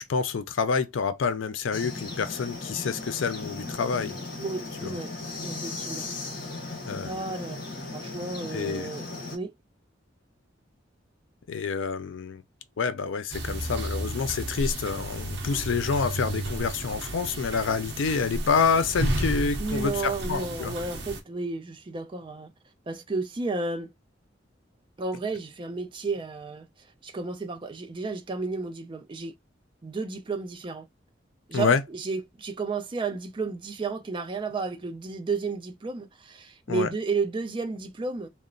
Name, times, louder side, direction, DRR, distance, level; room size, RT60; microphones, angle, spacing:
voice 1, 0.0-4.2 6.9-7.1 8.5-8.9 11.5-12.4 12.8-20.7 31.5-31.8 36.7-36.9, left 5 dB, 85° left, 0.4 m, -27 dB
sound 1, 1.7-9.4, left 3 dB, 50° left, 1.1 m, -37 dB
voice 2, 4.4-5.1 5.4-6.1 7.1-7.6 7.9-9.5 19.6-22.5 22.9-23.9 25.0-26.7 27.0-29.3 29.8-30.9 31.5-38.3, right 4 dB, 25° right, 0.4 m, -32 dB
sound 2, 13.3-21.2, right 1 dB, 65° right, 0.7 m, -32 dB
2.9 x 2.1 x 2.5 m
head